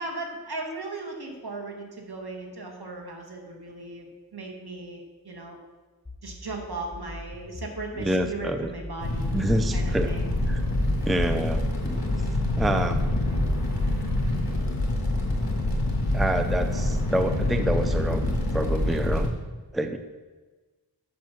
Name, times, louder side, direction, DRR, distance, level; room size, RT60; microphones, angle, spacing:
voice 1, 0.0-5.6 6.2-9.3 9.7-10.4, right 2 dB, 70° right, 1 dB, 1.7 m, -37 dB
sound 1, 6.1-9.1 9.5-12.5, left 1 dB, 15° left, 0.9 m, -42 dB
voice 2, 8.0-8.7 9.3-10.1 10.5-10.6 11.0-12.1 12.6-13.0 16.1-19.3 19.7-20.0, right 1 dB, ahead, 8 dB, 0.5 m, -27 dB
Fire, 9.0-19.3, left 1 dB, 60° left, 1.9 m, -26 dB
7.6 x 6.8 x 5.7 m, 1.3 s
wide cardioid pair, 50°, 40 cm